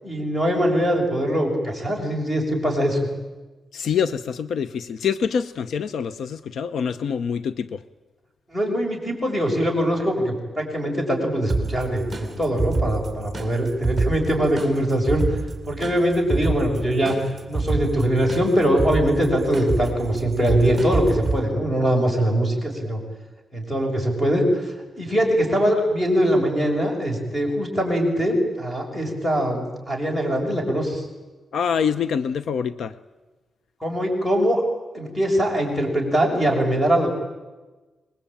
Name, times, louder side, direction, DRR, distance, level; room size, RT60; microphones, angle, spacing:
voice 1, 0.0-3.1 8.5-15.2 15.7-17.2 17.5-23.0 23.5-31.0 33.8-34.6 34.9-37.1, equal, 10° left, 2 dB, 6.4 m, -22 dB
voice 2, 3.7-7.8 31.5-32.9, left 7 dB, 75° left, 13 dB, 0.8 m, -25 dB
sound 1, 11.5-21.4, right 3 dB, 5° right, 4.1 m, -28 dB
26.0 x 21.5 x 8.9 m, 1.2 s
wide cardioid pair, 150°, 0 cm